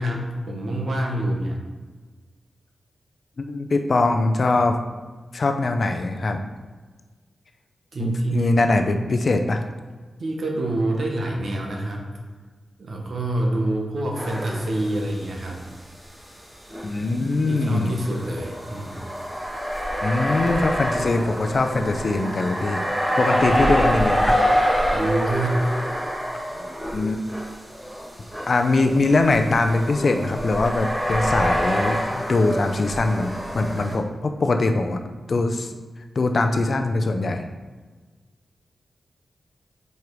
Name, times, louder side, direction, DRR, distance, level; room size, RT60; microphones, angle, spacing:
voice 1, 0.0-1.6 7.9-8.7 10.2-12.1 12.8-15.6 17.5-19.0 24.9-25.7, right 1 dB, 65° right, 1 dB, 1.2 m, -26 dB
voice 2, 3.5-4.8 5.3-6.4 8.0-9.6 16.8-17.9 20.0-22.9 23.2-24.4 26.9-27.2 28.5-35.0 35.3-35.7 36.2-37.4, left 2 dB, 55° left, 5 dB, 0.6 m, -22 dB
sound 1, 14.1-15.3 15.6-15.7 16.7-34.0, equal, 20° right, 1.6 m, -26 dB
5.4 x 4.8 x 4.7 m, 1.4 s
wide cardioid pair, 85°, 0 cm